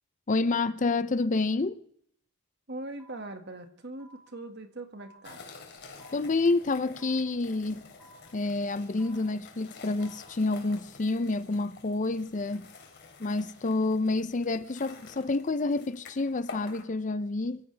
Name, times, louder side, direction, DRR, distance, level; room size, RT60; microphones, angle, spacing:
voice 1, 0.3-1.8 6.1-7.8 8.3-12.7 13.2-17.6, left 3 dB, 35° left, 0.5 m, -28 dB
voice 2, 2.7-5.4, right 2 dB, 50° right, 1.8 m, -41 dB
sound 1, 3.0-3.2 4.0-4.2 5.0-5.2 6.0-6.2 7.0-7.2 8.0-8.2 9.0-9.2 10.0-10.2 11.0-11.2, right 2 dB, ahead, 7.2 m, -55 dB
sound 2, 5.2-16.8, left 4 dB, 50° left, 3.0 m, -50 dB
25.0 x 15.5 x 3.4 m
head